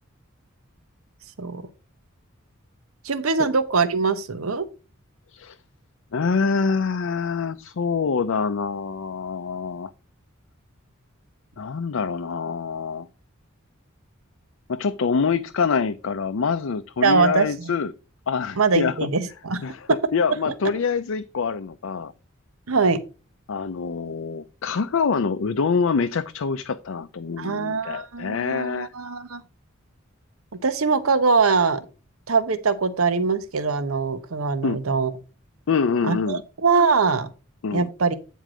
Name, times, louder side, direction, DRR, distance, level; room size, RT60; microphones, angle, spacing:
voice 1, 3.0-4.6 17.0-17.7 18.6-19.6 20.5-20.6 22.7-23.0 27.4-29.4 30.6-31.8 32.3-35.1 36.0-37.3 37.7-38.2, right 4 dB, 85° right, 0.9 m, -22 dB
voice 2, 6.1-9.9 11.6-13.1 14.7-17.9 18.3-19.0 19.6-22.1 23.5-28.9 34.6-34.8 35.7-36.4 37.6-37.9, left 5 dB, 70° left, 0.5 m, -25 dB
9.1 x 4.6 x 4.9 m
head